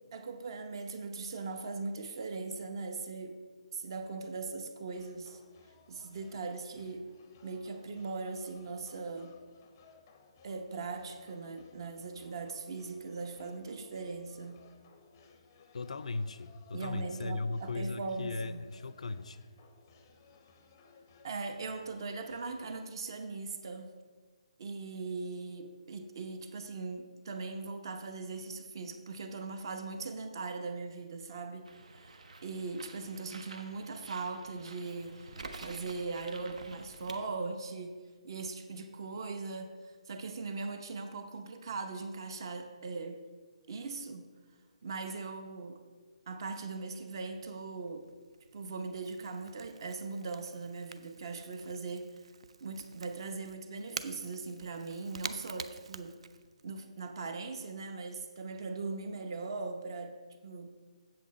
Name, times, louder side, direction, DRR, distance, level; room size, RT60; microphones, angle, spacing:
voice 1, 0.1-3.4 3.7-5.4 5.9-7.1 7.4-9.4 10.4-14.7 16.7-18.7 21.2-24.0 24.6-38.0 38.2-43.2 43.7-44.3 44.8-45.8 46.3-48.1 48.5-52.1 52.6-56.2 56.6-60.8, right 4 dB, 40° right, 7 dB, 0.8 m, -40 dB
sound 1, 4.9-22.9, left 4 dB, 20° left, 0.6 m, -61 dB
voice 2, 15.7-19.4, left 3 dB, 70° left, 14 dB, 0.4 m, -37 dB
Bird, 31.6-37.2, right 3 dB, 75° right, 0.9 m, -49 dB
Crackle / Crack, 47.3-56.8, right 5 dB, 55° right, 0.4 m, -48 dB
7.8 x 7.7 x 4.2 m, 1.5 s
hypercardioid pair, 170°, 4 cm